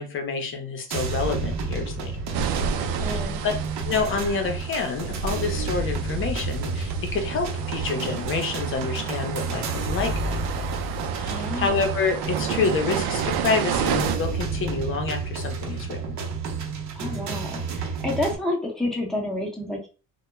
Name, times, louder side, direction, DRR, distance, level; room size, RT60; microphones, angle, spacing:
voice 1, 0.0-2.2 3.0-3.5 3.8-10.7 11.2-16.2, left 4 dB, 40° left, 5 dB, 0.7 m, -28 dB
sound 1, 0.9-18.4, right 4 dB, 55° right, 0.8 m, -30 dB
sound 2, 2.3-14.2, right 7 dB, 85° right, 0.5 m, -31 dB
voice 2, 2.7-3.4 11.3-11.8 16.9-19.9, left 1 dB, ahead, -1 dB, 0.7 m, -30 dB
2.2 x 2.2 x 3.0 m, 0.33 s
cardioid pair, 140°, 33 cm